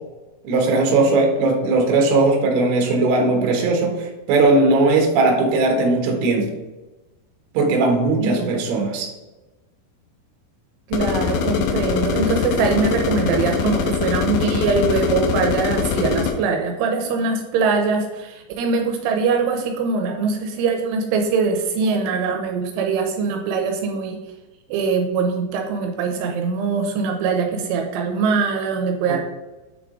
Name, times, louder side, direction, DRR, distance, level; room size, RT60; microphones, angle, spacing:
voice 1, 0.4-6.5 7.5-9.1 26.2-26.3, right 3 dB, 70° right, 1 dB, 2.8 m, -18 dB
voice 2, 8.2-8.6 10.9-24.2 24.7-29.2, right 5 dB, 85° right, 3 dB, 3.1 m, -22 dB
sound 1, 10.9-16.3, left 6 dB, 80° left, 2.9 m, -22 dB
8.9 x 3.6 x 3.7 m, 1.1 s
omnidirectional pair, 5.5 m